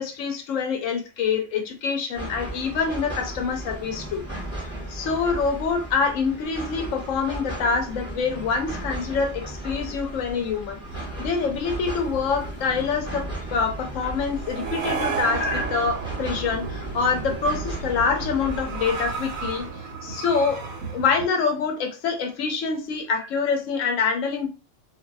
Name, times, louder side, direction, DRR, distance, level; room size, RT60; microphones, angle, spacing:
voice 1, 0.0-4.2 4.9-10.8 11.2-13.2 13.5-19.7 20.0-20.6 20.9-24.5, left 5 dB, 70° left, 1.0 m, -25 dB
sound 1, 2.1-19.7, right 1 dB, 5° right, 1.1 m, -36 dB
sound 2, 10.9-21.3, right 5 dB, 70° right, 1.1 m, -34 dB
2.6 x 2.5 x 2.3 m
omnidirectional pair, 1.5 m